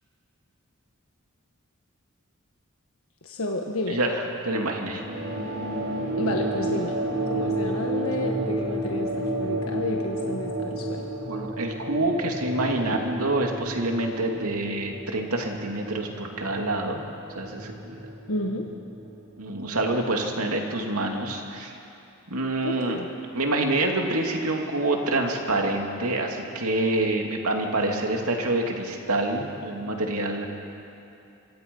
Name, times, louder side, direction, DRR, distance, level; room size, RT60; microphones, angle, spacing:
voice 1, 3.2-4.0 6.2-7.0 7.3-11.1 18.3-18.7 22.6-23.1, left 1 dB, 75° left, 1 dB, 1.4 m, -31 dB
voice 2, 3.9-5.0 11.3-17.0 17.3-18.0 19.4-21.7 22.3-23.0 23.3-30.5, right 2 dB, 90° right, 2 dB, 2.7 m, -27 dB
sound 1, 4.9-19.8, right 1 dB, 70° right, 4.5 m, -31 dB
26.0 x 24.5 x 5.5 m, 2.7 s
head